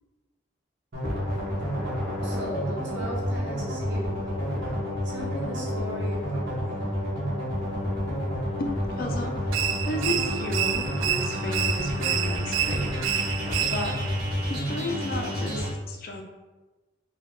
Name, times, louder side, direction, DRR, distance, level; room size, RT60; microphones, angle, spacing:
sound 1, 0.9-15.7, equal, 50° right, 1.4 m, -30 dB
sound 2, 1.0-2.5 4.2-4.8 7.5-13.9, equal, 5° left, 0.7 m, -41 dB
voice 1, 2.2-4.2 5.0-6.8, equal, 70° right, -3 dB, 1.1 m, -37 dB
voice 2, 8.6-12.9 13.7-14.0 14.4-16.2, left 1 dB, 50° left, 2 dB, 0.5 m, -33 dB
sound 3, 9.5-14.1, right 10 dB, 85° right, 0.3 m, -29 dB
4.3 x 2.3 x 3.7 m, 1.2 s
head